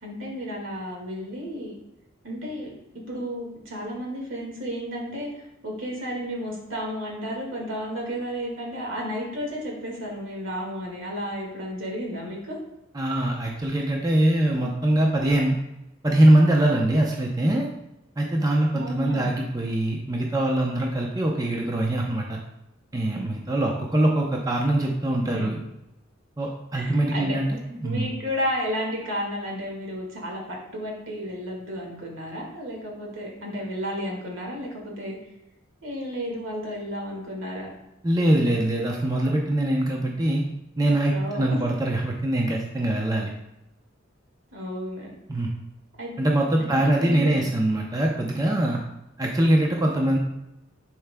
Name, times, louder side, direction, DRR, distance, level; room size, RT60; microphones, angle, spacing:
voice 1, 0.0-1.7 2.2-2.7 3.1-5.3 5.6-12.6 18.7-19.3 25.3-25.5 26.7-27.4 27.8-35.2 35.8-37.7 41.1-41.6 44.5-45.1 46.0-46.1 46.6-47.5, equal, 75° right, -1 dB, 1.9 m, -32 dB
voice 2, 12.9-15.6 16.0-17.7 18.2-22.4 22.9-25.6 26.4-28.1 38.0-40.4 40.8-43.3 45.3-45.5 46.2-48.8 49.2-50.2, right 1 dB, 20° right, 0 dB, 0.6 m, -23 dB
10.0 x 4.6 x 2.2 m, 0.89 s
head